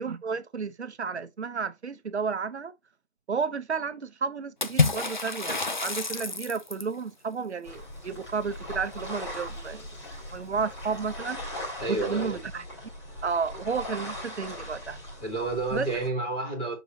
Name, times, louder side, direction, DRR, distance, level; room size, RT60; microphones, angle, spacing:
voice 1, 0.0-2.7 3.3-9.9 10.3-11.4 11.9-12.6 13.2-15.0 15.7-15.9, right 5 dB, 65° right, 0.9 m, -32 dB
Water / Splash splatter, 4.6-7.0, left 4 dB, 40° left, 0.6 m, -28 dB
sound 1, 7.6-16.1, left 1 dB, 25° left, 2.9 m, -39 dB
voice 2, 11.8-12.4 15.2-16.7, right 3 dB, 10° left, 1.3 m, -30 dB
6.9 x 5.0 x 2.7 m
hypercardioid pair, 175°, 37 cm